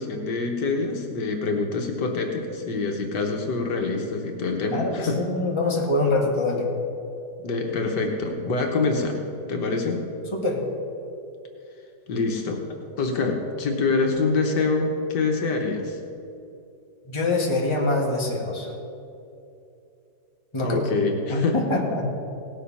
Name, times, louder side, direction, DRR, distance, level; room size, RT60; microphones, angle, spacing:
voice 1, 0.0-5.2 7.4-9.2 9.5-10.0 12.1-16.0 20.6-21.6, left 3 dB, 70° left, 3 dB, 1.7 m, -25 dB
voice 2, 4.7-6.7 10.3-10.6 17.1-18.7 20.5-20.8 21.3-22.1, left 2 dB, 15° left, -2 dB, 1.7 m, -24 dB
17.5 x 7.4 x 5.6 m, 2.7 s
omnidirectional pair, 1.9 m